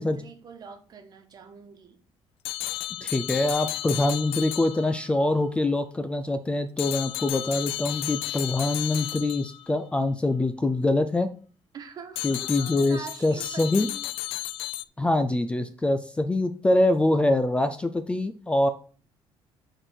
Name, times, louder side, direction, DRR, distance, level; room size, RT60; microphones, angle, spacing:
voice 1, 0.0-2.0 11.7-14.0, right 6 dB, 45° right, 6 dB, 1.3 m, -44 dB
sound 1, 2.4-5.2 6.8-9.7 12.2-14.8, left 14 dB, 80° left, 0.4 m, -33 dB
voice 2, 3.0-11.3 12.2-13.9 15.0-18.7, left 2 dB, 10° left, 9 dB, 0.4 m, -24 dB
6.4 x 4.5 x 6.1 m, 0.40 s
cardioid pair, 150°, 10 cm